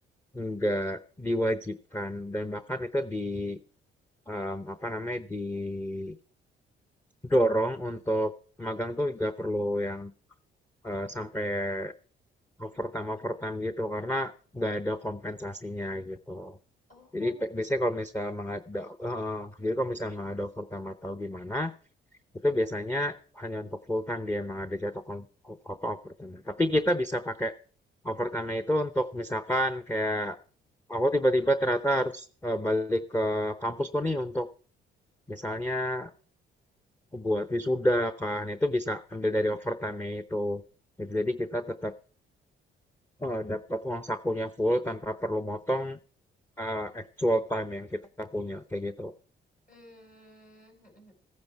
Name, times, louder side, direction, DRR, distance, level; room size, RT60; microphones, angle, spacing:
voice 1, 0.3-3.6 4.3-6.2 7.2-8.3 8.6-10.1 10.8-11.9 12.6-16.6 17.1-21.7 22.4-27.5 28.0-30.4 30.9-34.5 35.3-36.1 37.1-40.6 41.0-41.9 43.2-46.0 46.6-49.1, equal, 10° left, 7 dB, 0.7 m, -30 dB
voice 2, 16.9-17.4 49.7-51.1, left 1 dB, 45° left, 3 dB, 5.7 m, -53 dB
15.0 x 9.6 x 4.7 m, 0.43 s
cardioid pair, 90°, 20 cm